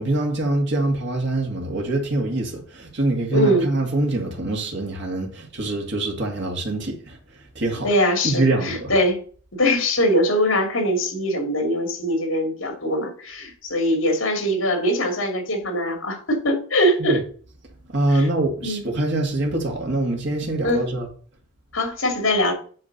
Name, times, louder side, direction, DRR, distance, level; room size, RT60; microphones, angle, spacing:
voice 1, 0.0-7.2 7.6-7.9 8.2-8.9 17.0-17.2 17.9-21.1, right 2 dB, 60° right, 2.2 m, -24 dB
voice 2, 3.3-3.7 7.8-9.2 9.5-17.2 18.1-18.3 18.6-18.8 20.6-20.9 21.7-22.5, equal, 70° left, 2.7 m, -22 dB
8.6 x 3.8 x 6.7 m
head